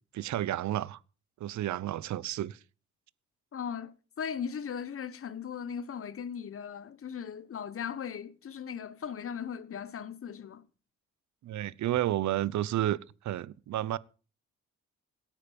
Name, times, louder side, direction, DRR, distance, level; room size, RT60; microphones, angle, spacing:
voice 1, 0.1-1.0 1.4-2.6 11.4-13.0 13.2-14.0, right 13 dB, 70° right, 0.9 m, -31 dB
voice 2, 3.5-10.7, left 7 dB, 45° left, 1.3 m, -38 dB
17.0 x 9.5 x 5.3 m
cardioid pair, 90°, 30 cm